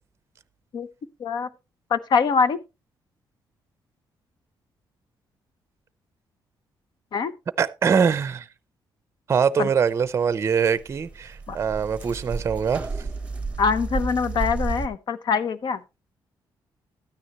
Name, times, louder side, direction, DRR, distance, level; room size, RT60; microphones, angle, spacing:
voice 1, 1.9-2.6 7.1-7.3 9.6-9.7 11.5-11.6 13.6-15.8, left 5 dB, 60° left, 0.9 m, -23 dB
voice 2, 7.6-8.5 9.3-12.9, right 6 dB, 35° right, 0.6 m, -23 dB
sound 1, 10.4-10.5 10.7-14.9, right 4 dB, 15° right, 1.0 m, -31 dB
13.0 x 9.7 x 2.9 m
cardioid pair, 130°, 8 cm